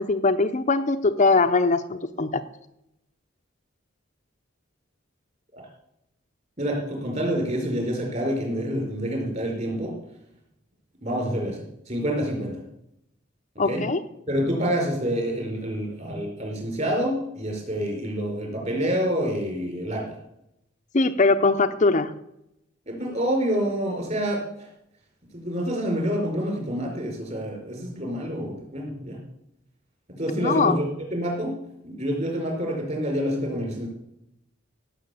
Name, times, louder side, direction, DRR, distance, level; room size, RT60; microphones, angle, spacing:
voice 1, 0.0-2.4 13.6-14.0 20.9-22.1 30.4-30.7, left 3 dB, 40° left, 8 dB, 0.6 m, -21 dB
voice 2, 6.6-9.9 11.0-11.6 11.9-12.6 13.7-13.8 14.3-20.0 22.9-24.4 25.3-29.2 30.1-30.9 31.1-31.5 31.8-33.9, equal, 35° right, 1 dB, 4.9 m, -27 dB
16.5 x 6.3 x 8.5 m, 0.82 s
head